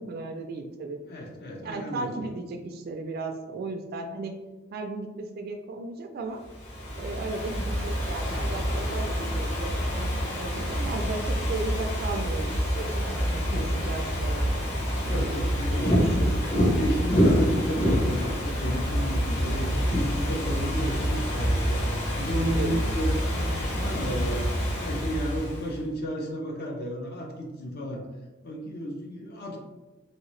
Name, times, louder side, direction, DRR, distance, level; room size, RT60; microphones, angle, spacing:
voice 1, 0.0-1.0 1.6-4.4 4.7-6.4 7.0-10.1 10.4-13.5 13.7-14.5 15.7-16.3 22.4-22.7, right 3 dB, 50° right, 5 dB, 0.3 m, -35 dB
voice 2, 1.0-2.2 15.0-16.1 16.8-21.8 22.2-24.5 24.7-28.0 28.4-29.6, equal, 55° left, 0 dB, 0.5 m, -33 dB
Ocean / Fireworks, 6.5-25.8, equal, 35° left, 0.9 m, -27 dB
3.0 x 2.8 x 3.0 m, 1.2 s
head